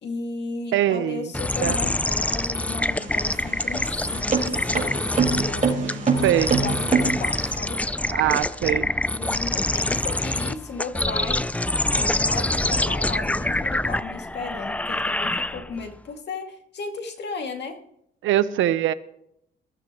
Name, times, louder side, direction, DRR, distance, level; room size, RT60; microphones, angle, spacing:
voice 1, 0.0-7.8 9.1-11.5 12.0-17.8, left 4 dB, 60° left, 4 dB, 2.4 m, -35 dB
voice 2, 0.7-1.3 1.6-1.9 5.9-6.0 6.2-6.6 8.1-8.9 18.2-18.9, right 12 dB, 80° right, 14 dB, 0.9 m, -22 dB
sound 1, 1.3-15.9, left 1 dB, 5° left, 0.4 m, -26 dB
sound 2, 2.8-7.6, right 5 dB, 40° right, 4.9 m, -25 dB
22.0 x 14.0 x 3.1 m, 0.75 s
cardioid pair, 90°, 20 cm